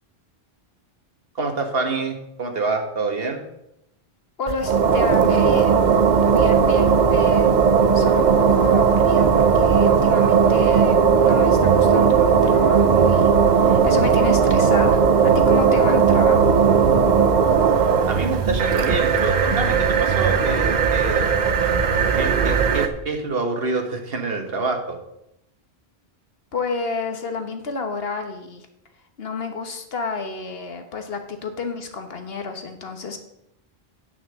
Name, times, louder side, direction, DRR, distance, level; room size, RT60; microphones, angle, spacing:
voice 1, 1.3-3.4 18.1-21.3 22.2-25.0, right 3 dB, 65° right, 4 dB, 1.6 m, -26 dB
voice 2, 4.4-5.9 6.2-7.5 7.9-13.3 13.6-16.5 26.5-28.7 29.2-33.2, left 4 dB, 70° left, 6 dB, 1.4 m, -30 dB
sound 1, 4.5-22.9, right 6 dB, 50° right, 0.8 m, -17 dB
9.7 x 5.9 x 6.5 m, 0.83 s
omnidirectional pair, 1.1 m